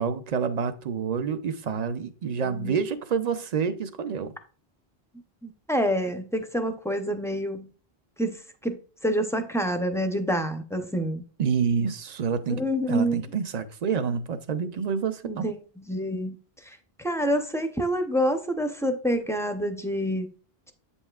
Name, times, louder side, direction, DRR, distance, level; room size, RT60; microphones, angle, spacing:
voice 1, 0.0-4.3 11.4-12.6 12.9-15.5, right 6 dB, 50° right, 0.5 m, -28 dB
voice 2, 2.5-2.8 5.4-7.7 8.2-11.2 12.5-13.2 15.3-15.6 15.9-16.3 16.7-20.3, equal, 5° left, 0.4 m, -27 dB
8.0 x 5.4 x 2.3 m
omnidirectional pair, 1.0 m